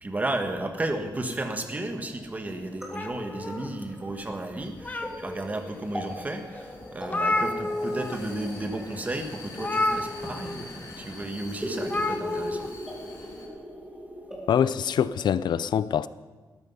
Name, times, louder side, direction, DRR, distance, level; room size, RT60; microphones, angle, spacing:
voice 1, 0.0-12.7, right 2 dB, 20° right, 1.4 m, -33 dB
sound 1, 1.7-15.5, equal, 5° right, 2.8 m, -42 dB
sound 2, 2.9-4.1 4.6-5.5 6.1-6.2 6.5-6.6 6.8-8.2 8.5-8.7 9.6-10.6 11.8-12.7, left 2 dB, 20° left, 0.9 m, -30 dB
Vehicle, 4.1-13.5, left 3 dB, 50° left, 3.4 m, -46 dB
voice 2, 14.5-16.1, left 8 dB, 85° left, 0.5 m, -24 dB
18.5 x 13.5 x 5.5 m
wide cardioid pair, 170°, 7 cm